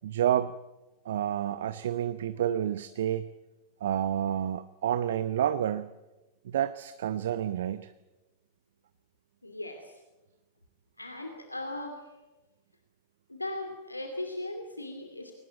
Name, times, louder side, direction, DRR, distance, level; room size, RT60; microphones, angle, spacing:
voice 1, 0.0-0.5 1.0-3.3 3.8-5.9 6.4-7.9, right 10 dB, 60° right, 13 dB, 0.8 m, -29 dB
voice 2, 9.4-10.0 11.0-12.1 13.3-15.3, left 1 dB, 85° left, 4 dB, 2.6 m, -38 dB
23.5 x 19.0 x 9.1 m, 1.1 s
figure-of-eight pair, 90°, 0 cm